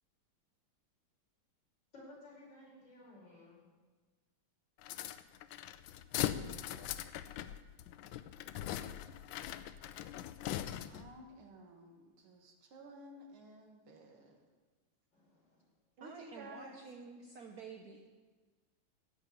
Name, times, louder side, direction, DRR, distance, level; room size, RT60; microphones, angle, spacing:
voice 1, 1.9-3.6 14.2-14.3 15.1-15.7, left 1 dB, 55° left, -6 dB, 5.7 m, -56 dB
sound 1, 4.8-11.2, left 11 dB, 75° left, 1.2 m, -41 dB
voice 2, 10.9-14.4 16.0-16.8 17.2-17.3, right 1 dB, 85° right, 3 dB, 2.4 m, -53 dB
voice 3, 16.0-18.1, right 5 dB, 60° right, 4 dB, 1.1 m, -50 dB
15.5 x 5.4 x 9.0 m, 1.3 s
omnidirectional pair, 2.3 m